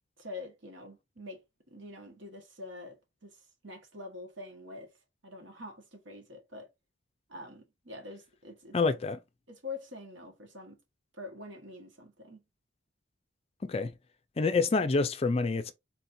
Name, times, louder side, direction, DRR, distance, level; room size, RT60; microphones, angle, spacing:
voice 1, 0.2-1.4 1.7-2.9 3.2-4.9 5.2-6.7 7.3-8.7 9.5-10.8 11.1-12.4, left 2 dB, 70° right, 1.4 m, -45 dB
voice 2, 8.7-9.2 13.6-13.9 14.4-15.7, left 4 dB, 30° left, 0.4 m, -27 dB
4.2 x 4.2 x 2.6 m
head